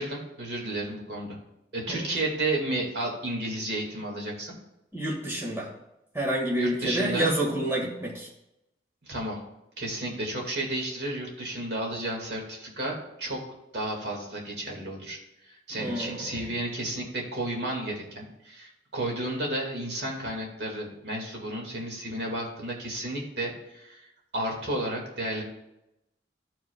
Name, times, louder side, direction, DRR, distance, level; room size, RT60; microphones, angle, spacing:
voice 1, 0.0-1.4 1.7-4.5 6.6-7.3 9.0-9.4 9.8-13.4 13.7-15.2 15.4-25.4, right 1 dB, 65° right, -1 dB, 1.9 m, -32 dB
voice 2, 4.9-5.7 6.1-8.3 15.8-16.4, right 1 dB, 15° right, -4 dB, 1.7 m, -29 dB
14.5 x 4.8 x 2.3 m, 0.87 s
head